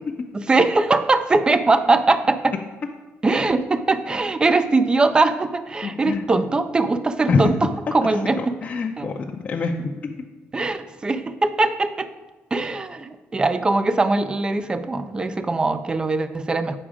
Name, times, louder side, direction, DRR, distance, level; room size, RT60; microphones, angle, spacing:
voice 1, 0.3-2.5 3.2-8.6 9.0-9.1 10.5-12.1 12.5-16.8, right 3 dB, 20° right, 11 dB, 0.5 m, -21 dB
voice 2, 5.8-6.2 7.3-7.5 8.4-10.1, left 4 dB, 35° left, 0 dB, 0.6 m, -25 dB
8.8 x 6.0 x 4.9 m, 1.2 s
cardioid pair, 145°, 4 cm